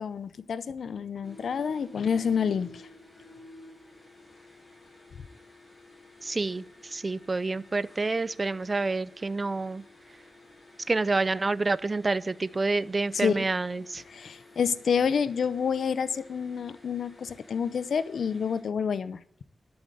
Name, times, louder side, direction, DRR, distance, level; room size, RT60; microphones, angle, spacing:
voice 1, 0.0-2.9 13.1-13.5 14.1-19.4, left 6 dB, 75° left, 15 dB, 0.6 m, -28 dB
sound 1, 1.2-18.6, left 2 dB, 25° left, 5.5 m, -53 dB
voice 2, 6.2-9.8 10.9-14.0, right 3 dB, 30° right, 17 dB, 0.5 m, -28 dB
12.0 x 8.0 x 7.8 m, 0.67 s
wide cardioid pair, 115°, 0 cm